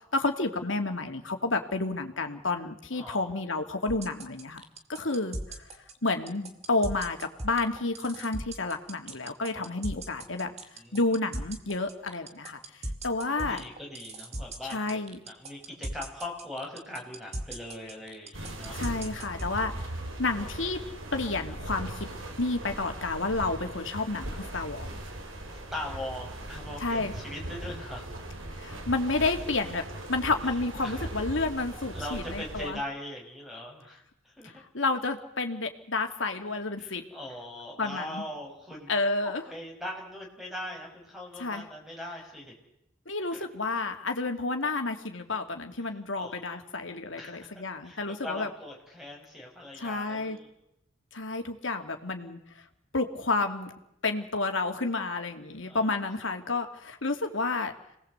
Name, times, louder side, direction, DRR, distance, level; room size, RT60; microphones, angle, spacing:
voice 1, 0.1-4.6 4.9-5.4 6.0-10.5 10.9-12.6 13.0-13.6 14.6-15.2 18.7-19.7 20.2-20.8 21.1-22.1 22.4-24.9 26.8-27.1 28.6-29.8 30.1-32.8 34.4-37.0 37.8-38.2 38.9-39.4 41.4-41.7 43.1-48.5 49.8-50.4 51.1-52.4 52.9-53.7 54.0-57.7, left 3 dB, 75° left, 5 dB, 2.6 m, -30 dB
voice 2, 2.9-3.3 9.5-9.8 10.8-11.0 13.4-15.0 15.3-18.8 25.7-28.1 30.4-30.5 30.8-31.0 31.9-34.6 36.8-38.9 39.2-42.5 43.3-43.5 45.8-45.9 46.1-46.6 47.1-50.5 55.7-55.9, left 1 dB, ahead, 0 dB, 6.3 m, -41 dB
sound 1, 3.9-19.6, right 1 dB, 35° right, 2.5 m, -37 dB
sound 2, 18.3-32.7, right 1 dB, 90° right, 3.7 m, -39 dB
27.5 x 19.5 x 8.2 m, 0.81 s
head